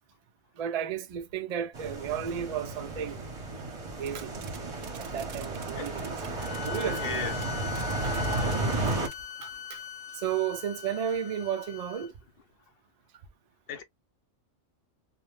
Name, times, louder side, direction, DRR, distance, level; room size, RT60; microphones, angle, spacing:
voice 1, 0.6-3.2 4.0-4.3 5.0-6.1 6.6-7.2 8.0-8.2 8.8-9.0 9.4-9.8 10.1-12.1, right 9 dB, 65° right, 0.3 m, -33 dB
sound 1, 1.7-9.1, right 2 dB, 35° right, 0.7 m, -33 dB
sound 2, 4.0-4.6 4.8-7.2 7.4-7.5 7.7-9.1, right 9 dB, 85° right, 0.9 m, -45 dB
voice 2, 5.7-6.5 7.0-7.5 8.4-8.5 13.7-13.8, left 7 dB, 55° left, 0.8 m, -38 dB
sound 3, 6.4-12.1, left 8 dB, 85° left, 1.0 m, -40 dB
2.2 x 2.1 x 3.1 m
omnidirectional pair, 1.3 m